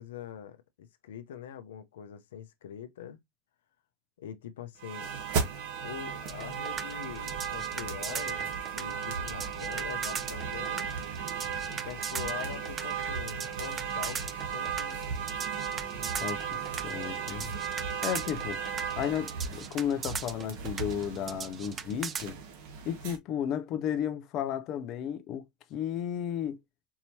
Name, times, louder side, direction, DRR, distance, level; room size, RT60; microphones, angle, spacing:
voice 1, 0.0-3.2 4.2-5.1 5.8-8.5 8.8-10.9 11.7-14.2 14.5-15.1, left 10 dB, 85° left, 0.7 m, -43 dB
sound 1, 4.8-23.2, right 6 dB, 65° right, 1.5 m, -35 dB
sound 2, 6.3-22.3, right 6 dB, 25° right, 0.5 m, -39 dB
voice 2, 16.2-17.5 18.0-18.6 19.0-22.4 22.8-25.4 25.7-26.6, left 9 dB, 45° left, 0.7 m, -33 dB
4.7 x 3.0 x 2.8 m
supercardioid pair, 115°, 0 cm